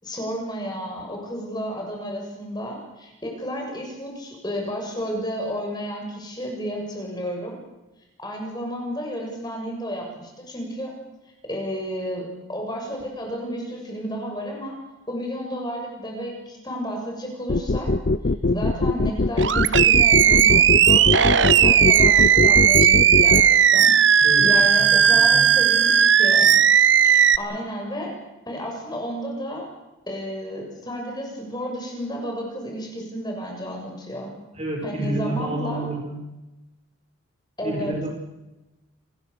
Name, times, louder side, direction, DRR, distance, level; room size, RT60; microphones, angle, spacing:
voice 1, 0.0-7.6 8.2-10.9 11.4-14.8 15.1-17.9 18.5-23.9 24.4-26.5 27.4-28.2 28.5-29.7 30.1-34.3 34.8-35.9 37.6-38.0, equal, 20° left, 1 dB, 6.7 m, -32 dB
sound 1, 17.5-23.4, left 2 dB, 45° left, 0.7 m, -21 dB
Animal, 19.4-27.4, right 8 dB, 60° right, 1.0 m, -16 dB
voice 2, 24.8-25.5 34.5-36.2 37.6-38.1, right 1 dB, 30° right, 1 dB, 6.7 m, -29 dB
28.0 x 21.0 x 6.8 m, 1.0 s
head